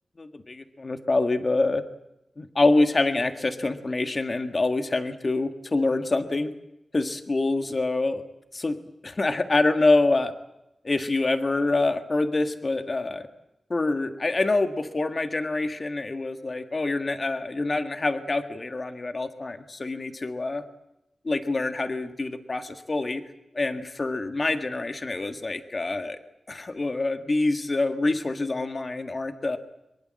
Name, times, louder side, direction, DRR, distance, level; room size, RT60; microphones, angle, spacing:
voice 1, 0.2-1.8 2.4-6.5 6.9-8.2 8.5-10.3 10.8-13.3 13.7-20.7 21.2-23.3 23.5-26.2 26.5-29.6, left 2 dB, 30° left, 9 dB, 1.7 m, -26 dB
24.0 x 22.5 x 7.7 m, 0.87 s
wide cardioid pair, 150°, 0 cm